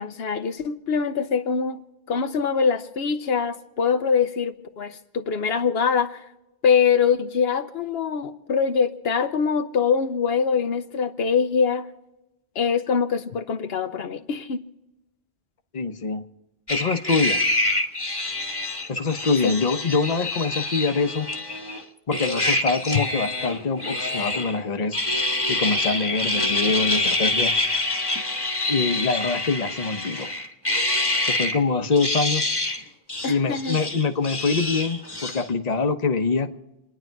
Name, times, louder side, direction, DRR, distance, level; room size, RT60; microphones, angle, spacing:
voice 1, 0.0-1.8 2.1-6.2 6.6-11.9 12.6-14.7 19.4-19.6 33.2-33.8, left 6 dB, 75° left, 1.0 m, -23 dB
voice 2, 15.7-16.2 16.7-17.4 18.9-21.3 22.1-25.0 25.5-27.5 28.7-30.3 31.2-32.5 33.2-36.5, left 4 dB, 40° left, 1.0 m, -24 dB
sound 1, 16.7-21.8 22.1-24.6 24.9-31.6 31.9-32.8 33.1-35.5, left 2 dB, 25° left, 1.4 m, -26 dB
29.0 x 10.5 x 4.6 m
omnidirectional pair, 1.0 m